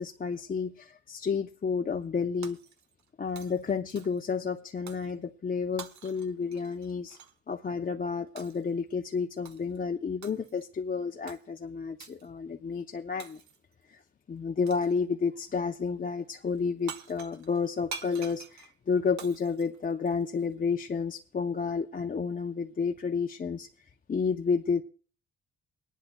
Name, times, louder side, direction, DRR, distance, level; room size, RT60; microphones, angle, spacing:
voice 1, 0.0-2.6 3.2-7.2 7.5-13.4 13.9-14.0 14.3-24.8, left 5 dB, 30° left, 0.6 m, -31 dB
Shatter, 2.4-3.1 3.4-4.3 4.9-5.1 5.8-7.4 8.4-8.7 9.4-9.8 10.2-10.7 11.3-11.4 12.0-12.3 13.2-13.7 14.7-15.0 16.6-16.7 16.9-20.5, right 6 dB, 65° right, 1.1 m, -46 dB
23.5 x 10.5 x 2.3 m
cardioid pair, 90°, 30 cm